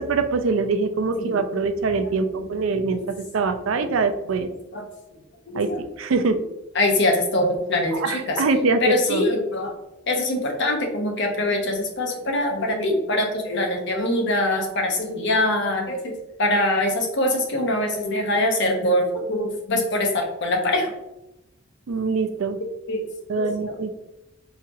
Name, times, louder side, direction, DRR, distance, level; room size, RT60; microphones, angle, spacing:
voice 1, 0.0-4.5 5.5-5.7 6.0-6.4 7.9-9.3 21.9-22.6 23.3-23.9, right 4 dB, 75° right, 8 dB, 0.4 m, -23 dB
voice 2, 1.1-1.4 2.1-3.0 3.4-3.9 4.7-4.8 5.5-5.8 6.7-8.4 8.8-9.7 10.1-16.1 16.4-20.9 22.9-23.0 23.4-23.8, left 1 dB, 60° left, 2 dB, 0.8 m, -24 dB
4.1 x 2.9 x 2.5 m, 0.92 s
head